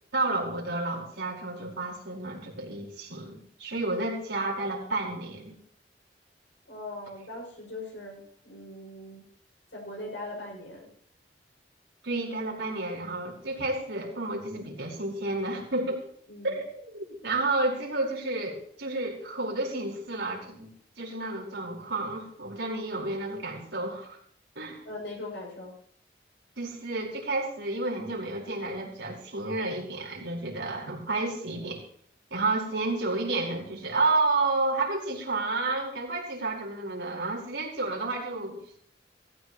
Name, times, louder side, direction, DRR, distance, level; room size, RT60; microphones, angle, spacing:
voice 1, 0.1-5.6 12.0-16.0 16.4-20.7 21.0-24.2 24.5-24.8 26.6-31.8 32.3-38.8, right 2 dB, 85° right, -3 dB, 4.9 m, -31 dB
voice 2, 6.7-9.3 9.7-10.9 16.3-16.6 24.9-25.8, left 2 dB, 80° left, -2 dB, 7.0 m, -40 dB
17.0 x 15.0 x 3.2 m, 0.63 s
head